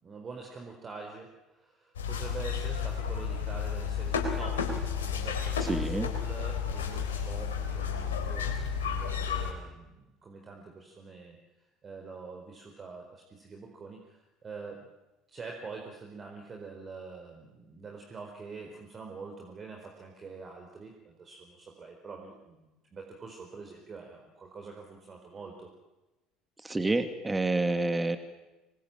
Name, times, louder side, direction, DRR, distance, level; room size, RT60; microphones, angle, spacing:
voice 1, 0.0-1.3 1.6-4.8 5.0-8.5 8.8-11.4 11.8-14.9 15.3-25.7, right 4 dB, 30° right, 2 dB, 4.5 m, -45 dB
sound 1, 2.0-9.5, left 6 dB, 75° left, 4.0 m, -32 dB
voice 2, 5.7-6.1 26.6-28.2, right 2 dB, 15° right, 8 dB, 2.5 m, -28 dB
26.0 x 22.0 x 9.1 m, 1.0 s
figure-of-eight pair, 65°, 0 cm